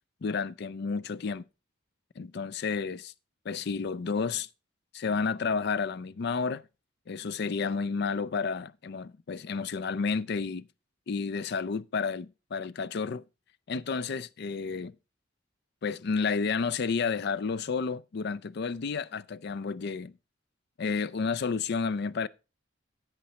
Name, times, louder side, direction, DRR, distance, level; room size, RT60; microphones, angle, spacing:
voice 1, 0.2-1.4 2.2-3.1 3.5-4.5 4.9-6.6 7.1-10.7 11.1-13.2 13.7-14.9 15.8-20.1 20.8-22.3, left 5 dB, 55° left, 0.4 m, -31 dB
9.0 x 8.5 x 4.2 m
head